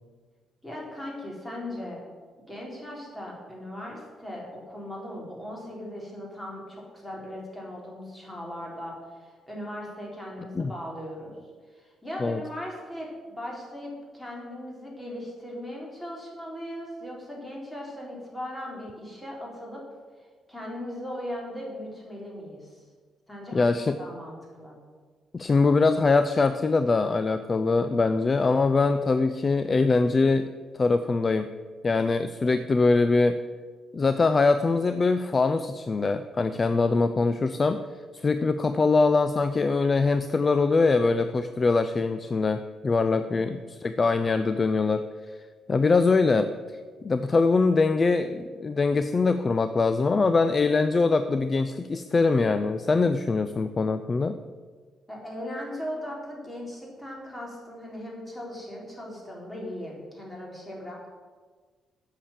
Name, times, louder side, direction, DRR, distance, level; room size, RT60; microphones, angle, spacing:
voice 1, 0.6-2.0 2.5-11.3 11.7-19.8 20.5-22.8 23.3-24.8 55.1-61.1, left 1 dB, 10° left, -3 dB, 3.7 m, -38 dB
voice 2, 23.5-23.9 25.3-30.5 30.7-31.5 31.8-33.4 33.9-37.8 38.1-45.0 45.7-46.5 47.0-54.4, left 3 dB, 35° left, 10 dB, 0.5 m, -23 dB
8.6 x 6.7 x 7.3 m, 1.5 s
cardioid pair, 90°, 0 cm